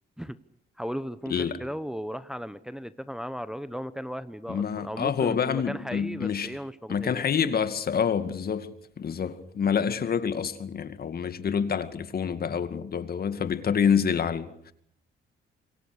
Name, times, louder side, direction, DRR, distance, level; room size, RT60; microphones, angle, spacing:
voice 1, 0.8-7.3, equal, 5° right, 1.0 m, -36 dB
voice 2, 1.3-1.6 4.5-6.5 6.9-14.7, left 7 dB, 50° left, 2.3 m, -27 dB
27.0 x 24.0 x 6.7 m
cardioid pair, 90°, 20 cm